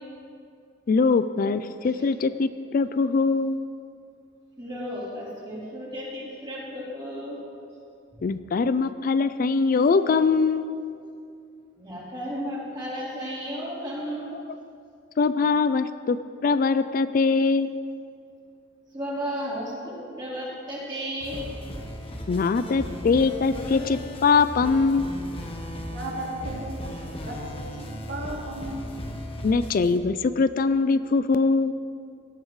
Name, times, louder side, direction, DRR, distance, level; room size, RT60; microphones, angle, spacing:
voice 1, 0.9-3.6 8.2-10.7 15.2-16.2 16.4-17.8 22.3-25.1 29.4-31.7, left 4 dB, 45° left, 13 dB, 0.3 m, -22 dB
voice 2, 4.6-7.4 11.8-14.3 18.9-21.5, equal, 25° right, -8 dB, 3.5 m, -34 dB
sound 1, 21.2-30.0, left 1 dB, 30° left, 1.1 m, -36 dB
voice 3, 25.9-29.0 29.6-29.7, right 1 dB, 80° right, -4 dB, 2.9 m, -36 dB
18.0 x 12.0 x 3.2 m, 2.5 s
head